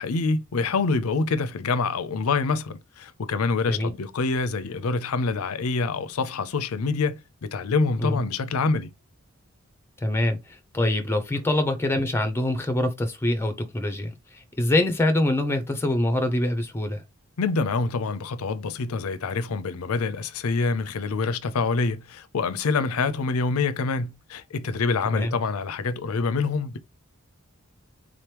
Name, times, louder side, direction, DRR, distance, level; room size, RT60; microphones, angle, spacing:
voice 1, 0.0-8.9 11.3-11.4 17.4-26.8, left 4 dB, 80° left, 0.5 m, -26 dB
voice 2, 10.0-10.4 10.7-14.1 14.6-17.0 25.1-25.3, left 1 dB, 10° left, 0.6 m, -24 dB
3.9 x 3.0 x 3.3 m
head